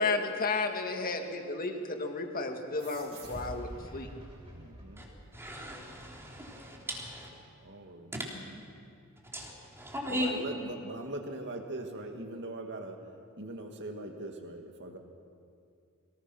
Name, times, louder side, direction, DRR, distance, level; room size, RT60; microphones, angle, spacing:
voice 1, 0.0-4.1, left 3 dB, 40° left, 4 dB, 1.9 m, -32 dB
sound 1, 2.8-5.8, right 1 dB, 25° right, 6.3 m, -46 dB
voice 2, 4.5-5.1 7.4-8.3 10.1-13.0 13.4-15.0, right 2 dB, 55° right, 3 dB, 2.2 m, -41 dB
voice 3, 5.3-7.3 9.3-10.3, left 1 dB, 10° right, -2 dB, 3.5 m, -37 dB
23.5 x 19.0 x 6.2 m, 2.5 s
head